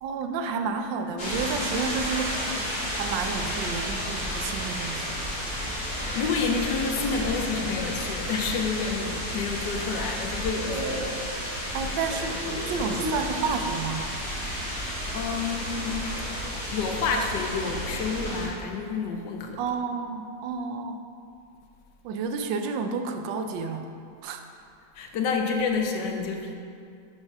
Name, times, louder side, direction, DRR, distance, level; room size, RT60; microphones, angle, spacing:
voice 1, 0.0-2.4 2.9-5.1 11.7-14.1 19.6-21.0 22.0-23.9 24.2-24.4, right 5 dB, 80° right, 6 dB, 1.3 m, -30 dB
sound 1, 1.2-18.5, equal, 40° left, 1.7 m, -32 dB
sound 2, 4.8-10.5, right 1 dB, 25° right, 0.7 m, -42 dB
voice 2, 5.5-5.9 6.1-11.2 15.1-16.0 16.7-19.7 24.9-26.5, left 5 dB, 70° left, 3 dB, 1.3 m, -29 dB
5.4 x 5.4 x 6.0 m, 2.4 s
omnidirectional pair, 2.0 m